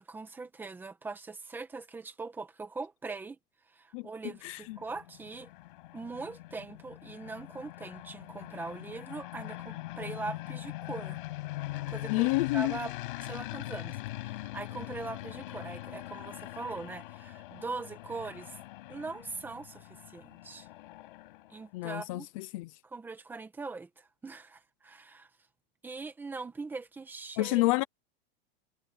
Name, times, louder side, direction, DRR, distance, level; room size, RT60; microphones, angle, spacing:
voice 1, 0.0-3.4 3.7-5.5 5.9-11.2 11.9-12.3 12.5-12.9 13.2-18.6 18.9-20.7 21.5-22.3 22.8-25.3 25.8-27.7, right 3 dB, 5° right, 1.6 m, -41 dB
voice 2, 4.4-4.8 12.1-12.8 21.7-22.7 27.4-27.8, left 22 dB, 35° left, 0.7 m, -29 dB
sound 1, 4.5-21.7, left 17 dB, 60° left, 5.8 m, -42 dB
supercardioid pair, 180°, 30 cm